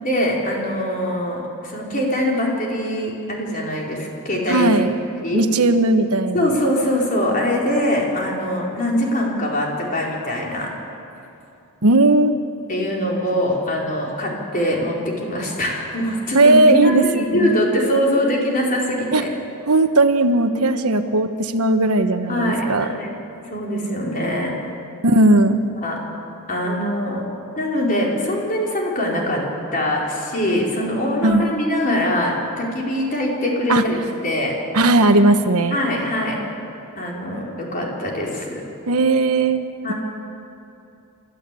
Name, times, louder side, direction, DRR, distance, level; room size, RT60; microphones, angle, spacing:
voice 1, 0.0-4.8 5.2-5.4 6.3-10.7 12.7-19.3 22.3-23.2 23.5-24.5 25.8-26.0 26.5-27.2 27.6-29.4 29.7-34.5 35.7-36.4 37.0-38.6 39.8-39.9, left 1 dB, 40° left, -2 dB, 4.4 m, -23 dB
voice 2, 4.5-5.0 5.3-6.6 11.8-12.3 16.3-17.6 19.1-19.2 19.7-22.9 25.0-25.6 31.2-31.5 33.7-33.8 34.7-35.8 38.9-39.6, right 2 dB, 75° right, 8 dB, 1.2 m, -17 dB
28.5 x 13.5 x 8.4 m, 2.7 s
head